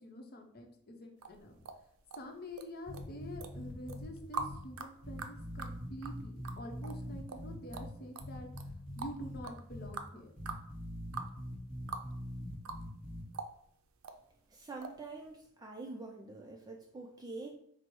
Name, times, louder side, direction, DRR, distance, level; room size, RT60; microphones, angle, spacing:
voice 1, 0.0-1.6 2.2-8.5 9.0-10.3, equal, 45° left, 3 dB, 0.7 m, -47 dB
sound 1, 1.2-2.7 2.9-3.5 3.9-12.1 12.4-13.1 13.3-14.2 14.8-15.0 15.4-15.5, right 4 dB, 80° right, 0.4 m, -43 dB
sound 2, 2.9-4.0 4.4-4.5 5.0-7.9 8.2-9.4 9.7-9.9 10.4-13.2, equal, 5° left, 1.4 m, -43 dB
voice 2, 14.5-17.6, right 3 dB, 20° right, 1 dB, 0.3 m, -46 dB
4.6 x 2.0 x 4.5 m, 0.69 s
head